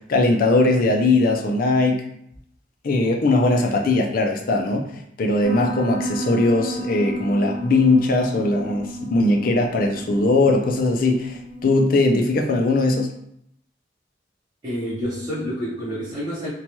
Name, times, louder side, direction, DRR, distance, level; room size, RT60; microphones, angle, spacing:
voice 1, 0.1-2.0 2.8-4.9 5.2-13.1, left 2 dB, 50° left, 2 dB, 0.4 m, -20 dB
Piano, 5.4-11.6, equal, 25° left, 0.9 m, -32 dB
voice 2, 14.6-16.5, equal, 25° right, -11 dB, 0.7 m, -29 dB
2.7 x 2.2 x 2.9 m, 0.71 s
head